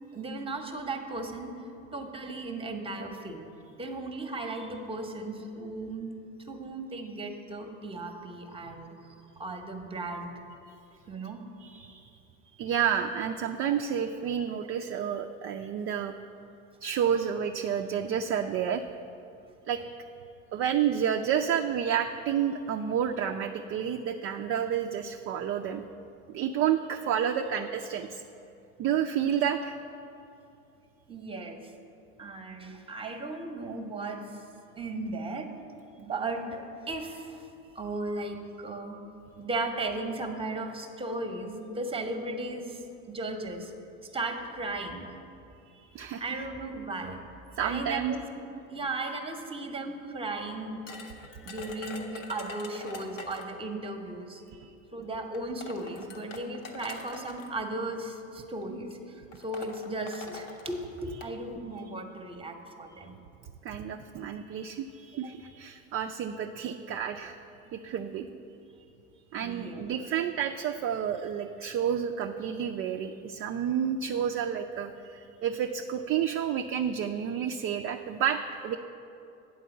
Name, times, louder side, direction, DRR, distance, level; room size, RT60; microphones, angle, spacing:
voice 1, 0.1-1.5 1.9-3.5 3.8-6.1 6.4-10.3 11.1-11.4 31.1-31.7 32.2-34.4 34.8-35.5 36.0-37.5 37.7-39.0 39.4-43.7 44.1-45.2 46.2-47.2 47.6-51.0 51.4-54.4 54.9-63.2 68.2-68.3 69.4-70.0, right 2 dB, 15° right, 5 dB, 0.9 m, -36 dB
voice 2, 11.6-12.1 12.6-16.1 16.8-18.8 19.7-19.8 20.5-25.8 26.3-28.2 28.8-29.7 45.7-46.2 47.6-48.1 54.5-54.7 63.6-67.4 67.7-68.2 69.3-78.8, right 8 dB, 35° right, 4 dB, 0.4 m, -30 dB
sound 1, 50.9-53.6 54.7-54.8 55.3-57.5 58.4-58.6 58.9-59.0 59.3-61.3, left 3 dB, 85° left, 1.0 m, -44 dB
8.2 x 4.6 x 7.0 m, 2.6 s
hypercardioid pair, 90°, 38 cm